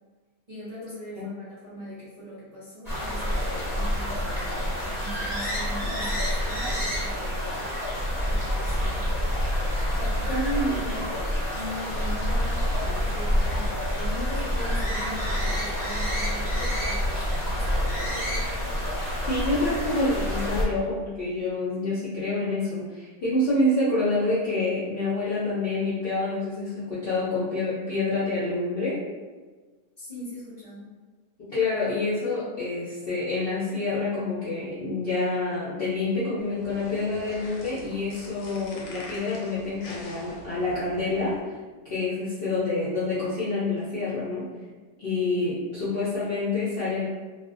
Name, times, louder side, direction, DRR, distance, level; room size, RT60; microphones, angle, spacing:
voice 1, 0.5-7.6 8.2-9.1 9.9-11.1 11.5-18.1 30.0-30.9 45.3-45.4, left 1 dB, 40° right, -12 dB, 0.5 m, -41 dB
sound 1, 2.8-20.6, equal, 15° left, 0.7 m, -27 dB
voice 2, 10.3-11.0 19.3-29.0 31.5-41.5 41.9-44.5 45.0-47.1, left 2 dB, 60° left, -10 dB, 0.6 m, -27 dB
sound 2, 36.4-41.4, left 2 dB, 85° left, 1.1 m, -44 dB
2.4 x 2.0 x 2.5 m, 1.3 s
omnidirectional pair, 1.6 m